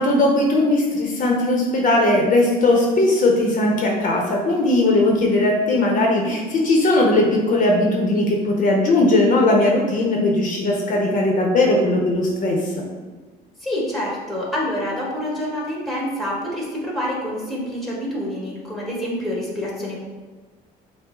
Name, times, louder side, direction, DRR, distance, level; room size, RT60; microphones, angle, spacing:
voice 1, 0.0-12.7, left 2 dB, 50° left, 0 dB, 0.7 m, -18 dB
voice 2, 13.6-20.0, equal, ahead, -4 dB, 1.4 m, -27 dB
5.9 x 2.0 x 3.7 m, 1.3 s
cardioid pair, 110°, 17 cm